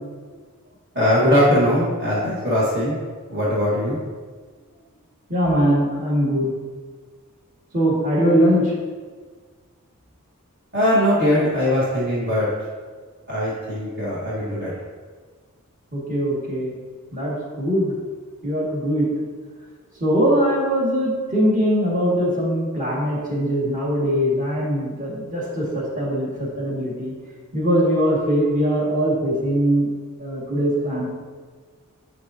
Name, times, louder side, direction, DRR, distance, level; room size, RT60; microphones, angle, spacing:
voice 1, 0.9-2.9 3.3-4.0 10.7-12.5 13.3-14.7, equal, 50° right, -8 dB, 1.5 m, -20 dB
voice 2, 5.3-6.5 7.7-8.7 15.9-16.7 17.1-18.0 18.4-19.2 20.0-27.1 27.5-29.9 30.2-31.1, equal, 35° right, -6 dB, 2.0 m, -21 dB
7.3 x 6.5 x 2.8 m, 1.5 s
head